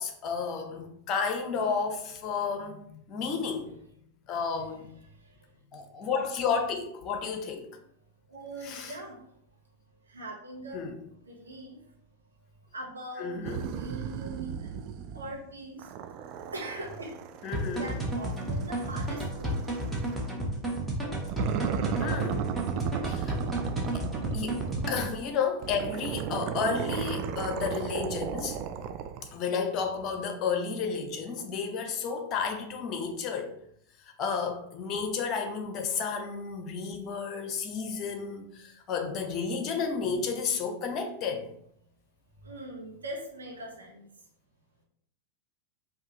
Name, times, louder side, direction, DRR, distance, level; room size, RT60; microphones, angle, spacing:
voice 1, 0.0-3.7 4.3-5.0 5.7-7.7 8.6-8.9 10.7-11.0 13.2-13.6 17.4-17.8 22.0-22.4 23.0-23.3 23.9-24.1 24.3-24.6 24.9-28.6 29.3-33.6 34.0-41.5, left 5 dB, 35° left, 5 dB, 0.8 m, -32 dB
voice 2, 5.0-5.4 8.3-9.2 10.1-10.9 11.2-11.8 12.7-14.8 15.1-15.9 16.5-17.1 17.8-19.7 21.4-21.5 23.2-23.5 24.2-24.4 42.4-44.0, right 1 dB, 75° right, -2 dB, 1.2 m, -41 dB
sound 1, 13.4-15.4 15.8-20.3 21.3-25.1 25.6-29.3, right 8 dB, 40° right, 0.3 m, -35 dB
sound 2, 17.5-25.2, right 1 dB, 5° right, 1.0 m, -32 dB
4.8 x 2.8 x 3.1 m, 0.71 s
figure-of-eight pair, 90°, 0 cm